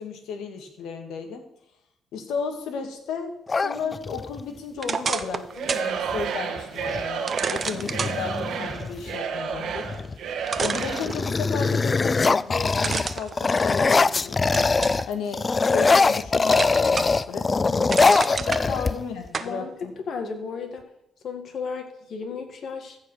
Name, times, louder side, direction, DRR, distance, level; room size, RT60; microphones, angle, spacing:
voice 1, 0.0-1.4 2.1-10.0 10.6-14.5 15.1-17.5 18.2-19.9, left 5 dB, 85° left, 6 dB, 1.9 m, -34 dB
sound 1, 3.5-4.4 6.1-6.2 6.6-7.1 7.6-9.1 9.8-10.2 10.5-15.1 15.3-19.3, left 4 dB, 30° left, 0.3 m, -22 dB
sound 2, 4.8-5.9 6.3-6.4 7.3-8.1 9.9-10.0 10.5-11.6 12.8-14.1 14.5-15.0 15.6-16.2 16.5-17.3 17.6-18.6 19.3-19.5, right 5 dB, 40° right, 0.7 m, -30 dB
Singing / Crowd, 5.5-11.2, right 6 dB, 75° right, 1.3 m, -31 dB
voice 2, 19.4-20.8 21.2-23.0, left 5 dB, 60° left, 6 dB, 2.0 m, -34 dB
15.0 x 5.0 x 6.3 m, 0.82 s
cardioid pair, 90°, 0 cm